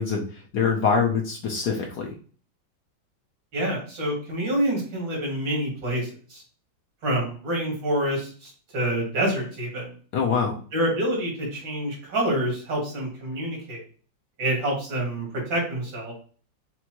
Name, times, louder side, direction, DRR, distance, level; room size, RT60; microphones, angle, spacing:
voice 1, 0.0-2.1 10.1-10.5, left 5 dB, 65° left, 0 dB, 1.2 m, -24 dB
voice 2, 3.5-6.4 7.0-9.9 10.7-13.8 14.4-16.2, right 1 dB, 80° right, -2 dB, 2.8 m, -27 dB
6.0 x 2.7 x 2.9 m, 0.40 s
omnidirectional pair, 2.1 m